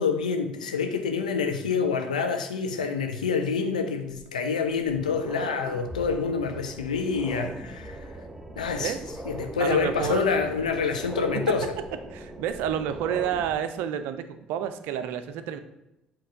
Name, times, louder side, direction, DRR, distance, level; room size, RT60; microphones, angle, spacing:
voice 1, 0.0-8.1 8.6-8.9 9.3-11.7, left 5 dB, 80° left, 6 dB, 0.6 m, -27 dB
sound 1, 4.1-4.2 4.7-13.5, right 1 dB, 10° right, 0.8 m, -40 dB
voice 2, 9.6-10.5 11.3-11.5 12.1-15.6, right 9 dB, 60° right, 11 dB, 0.5 m, -30 dB
7.8 x 3.0 x 4.8 m, 0.89 s
figure-of-eight pair, 50°, 4 cm